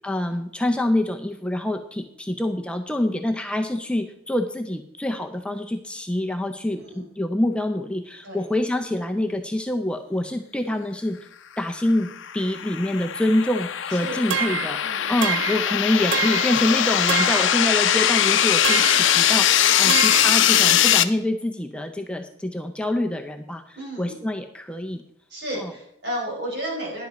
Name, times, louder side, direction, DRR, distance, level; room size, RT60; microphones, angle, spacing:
voice 1, 0.0-11.2 11.6-25.0 25.6-25.7, left 1 dB, 5° left, 4 dB, 0.5 m, -26 dB
voice 2, 6.7-7.0 8.2-8.4 13.9-14.2 14.8-15.1 19.8-20.3 23.7-24.2 25.3-27.1, right 1 dB, 55° right, -2 dB, 4.4 m, -33 dB
sound 1, 12.1-21.0, left 10 dB, 65° left, 0.6 m, -21 dB
sound 2, 14.3-14.8 15.2-15.7 16.1-16.6 17.1-17.5 18.6-19.1 19.9-20.3, right 9 dB, 75° right, 0.4 m, -26 dB
10.5 x 8.1 x 5.1 m, 0.74 s
head